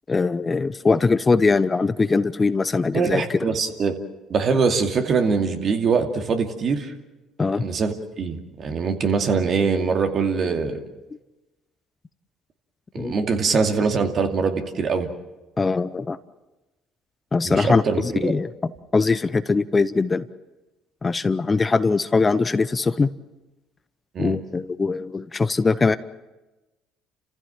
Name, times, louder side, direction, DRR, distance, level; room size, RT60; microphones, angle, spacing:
voice 1, 0.1-3.4 7.4-7.6 13.0-13.2 15.6-16.2 17.3-20.2 21.0-23.1 24.2-26.0, left 4 dB, 25° left, 14 dB, 0.8 m, -21 dB
voice 2, 2.9-4.0 4.3-6.9 7.6-10.8 12.9-15.1 17.4-18.3 24.1-24.4, right 5 dB, 50° right, 5 dB, 2.5 m, -23 dB
29.5 x 15.5 x 7.5 m, 1.1 s
supercardioid pair, 70°, 0 cm